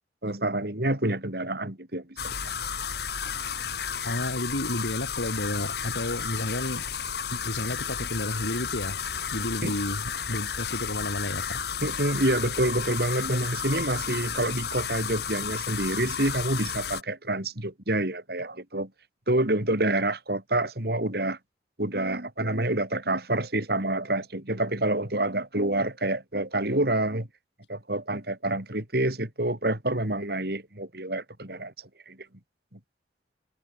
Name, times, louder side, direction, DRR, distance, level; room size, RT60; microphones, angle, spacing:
voice 1, 0.2-2.3 9.6-9.7 11.8-18.9 19.3-21.4 21.8-27.3 27.7-31.7 32.1-32.2 32.7-32.8, right 1 dB, 60° right, 3.9 m, -27 dB
sound 1, 2.2-17.0, left 7 dB, 60° left, 1.9 m, -32 dB
voice 2, 4.0-6.8 7.2-9.0 9.3-11.6, left 1 dB, 85° left, 5.0 m, -31 dB
head